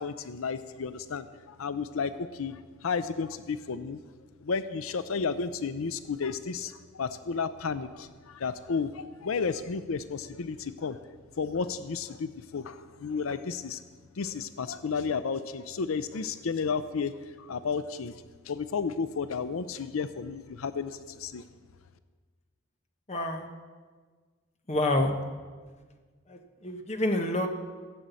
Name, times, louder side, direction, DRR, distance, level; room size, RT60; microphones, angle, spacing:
voice 1, 0.0-4.0 4.4-11.0 11.4-13.8 14.2-17.1 17.4-21.4, left 5 dB, 90° left, 12 dB, 0.5 m, -32 dB
voice 2, 23.1-23.4 24.7-25.1 26.3-27.5, left 1 dB, 30° left, 4 dB, 1.3 m, -28 dB
15.5 x 7.6 x 8.2 m, 1.5 s
head